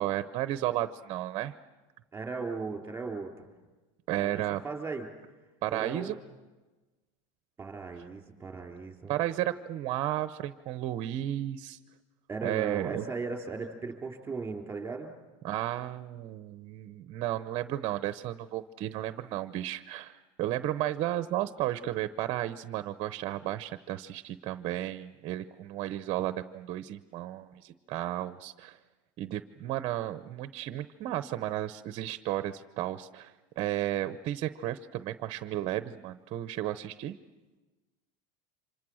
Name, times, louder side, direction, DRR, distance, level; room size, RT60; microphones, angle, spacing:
voice 1, 0.0-1.5 4.1-4.6 5.6-6.2 9.1-11.8 12.4-13.1 15.4-28.8 29.2-37.2, right 13 dB, 35° right, 12 dB, 0.8 m, -33 dB
voice 2, 2.1-3.5 4.2-5.1 5.7-6.2 7.6-9.1 12.3-15.1, right 4 dB, 10° right, 3 dB, 3.7 m, -37 dB
30.0 x 26.0 x 6.3 m, 1.2 s
supercardioid pair, 155°, 17 cm